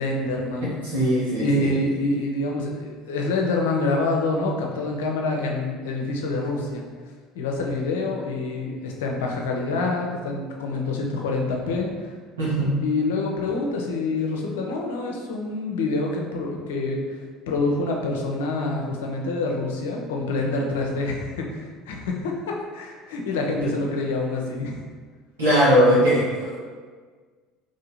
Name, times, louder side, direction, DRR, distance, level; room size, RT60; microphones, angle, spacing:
voice 1, 0.0-0.8 1.4-6.8 7.3-12.1 12.8-24.8, left 2 dB, 80° left, 1 dB, 0.6 m, -26 dB
voice 2, 0.8-1.7 12.4-12.7 25.4-26.6, equal, 90° right, -8 dB, 1.4 m, -20 dB
3.0 x 2.8 x 3.9 m, 1.6 s
hypercardioid pair, 75°, 0 cm